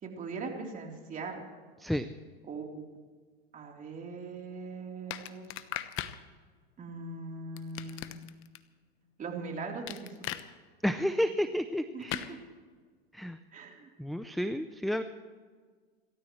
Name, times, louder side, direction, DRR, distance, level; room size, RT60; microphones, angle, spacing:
voice 1, 0.0-1.4 2.5-2.8 3.5-5.6 6.8-8.2 9.2-10.1 11.9-12.4 13.5-13.9, right 4 dB, 25° right, 1 dB, 3.7 m, -40 dB
sound 1, 5.1-6.2 7.6-8.6 9.9-10.4 12.1-12.3, left 13 dB, 40° left, 1.1 m, -37 dB
voice 2, 10.8-12.4 13.1-13.4 14.0-15.0, equal, ahead, 11 dB, 0.4 m, -31 dB
30.0 x 14.0 x 3.2 m, 1.5 s
hypercardioid pair, 115°, 31 cm